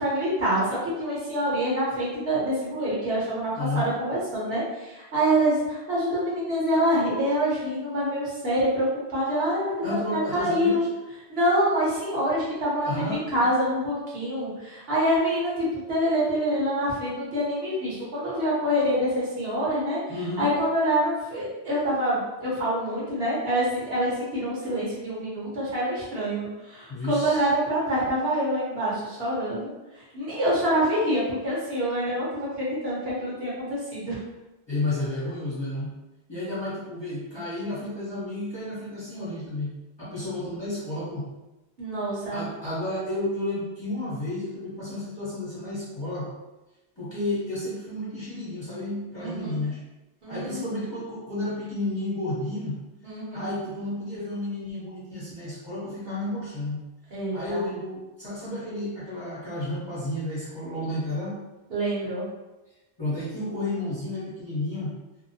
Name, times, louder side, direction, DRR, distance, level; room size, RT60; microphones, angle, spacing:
voice 1, 0.0-8.9 9.1-9.8 10.1-10.8 11.3-20.0 20.4-29.7 30.1-34.2 41.8-42.5 49.2-49.6 50.2-50.8 53.0-53.5 57.1-57.7 61.7-62.3, equal, 65° right, -7 dB, 1.2 m, -26 dB
voice 2, 3.5-3.9 9.8-10.9 12.8-13.5 20.1-20.5 26.9-27.5 34.7-35.9 36.3-39.7 40.0-41.2 42.3-46.3 47.0-49.8 50.3-52.8 53.3-56.8 57.3-61.4 63.0-64.9, left 1 dB, 25° left, -10 dB, 0.8 m, -31 dB
2.7 x 2.1 x 2.7 m, 1.1 s
omnidirectional pair, 1.1 m